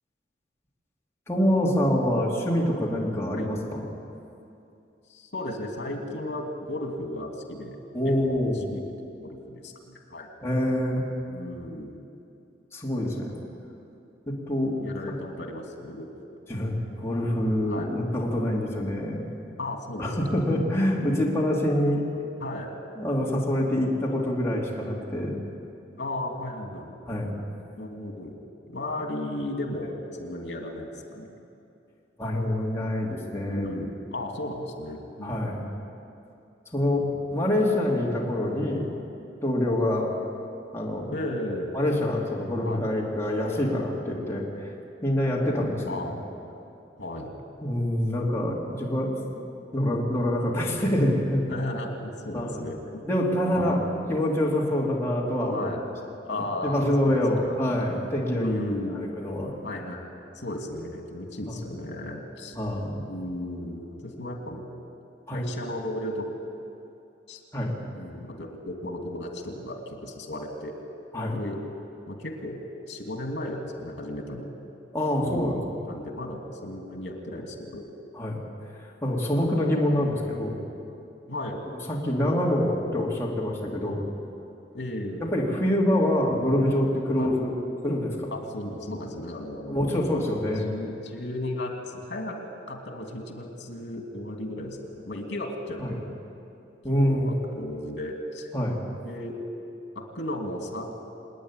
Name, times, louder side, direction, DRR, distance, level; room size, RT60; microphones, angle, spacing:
voice 1, 1.3-3.8 7.9-8.7 10.4-11.0 12.7-13.4 14.3-14.8 16.5-19.2 20.0-22.0 23.0-25.3 27.1-27.3 32.2-33.6 35.2-35.7 36.7-37.0 37.3-38.9 39.4-40.1 40.7-41.1 41.7-44.7 45.0-45.8 47.6-49.2 49.7-51.5 52.3-52.6 53.1-53.8 54.1-55.7 56.3-58.6 59.2-59.5 62.5-63.0 65.3-65.4 67.5-67.7 71.1-71.4 74.9-75.8 78.2-78.4 79.0-80.6 81.9-84.0 85.2-87.5 87.8-88.4 89.7-90.7 95.8-95.9 96.8-97.4 98.5-98.8, left 1 dB, 15° left, -4 dB, 2.9 m, -26 dB
voice 2, 5.1-7.8 8.0-8.8 9.2-10.3 11.3-12.0 14.8-16.4 17.7-17.9 19.6-20.1 22.4-22.7 26.0-27.0 27.7-28.3 28.7-31.3 33.5-35.5 37.1-37.2 41.1-41.7 42.6-42.8 45.8-46.2 47.0-47.3 51.5-53.0 53.4-54.0 55.5-55.8 56.2-57.8 58.3-59.1 59.6-62.5 63.1-64.6 65.3-66.3 67.3-67.4 67.9-70.7 71.3-71.6 72.1-74.5 75.2-77.8 81.3-81.6 84.7-85.3 87.2-87.3 88.3-90.0 90.6-92.4 92.7-96.0 96.9-98.5 99.0-99.4 99.9-100.9, left 1 dB, 75° left, 2 dB, 2.9 m, -35 dB
26.5 x 9.7 x 10.0 m, 2.7 s
head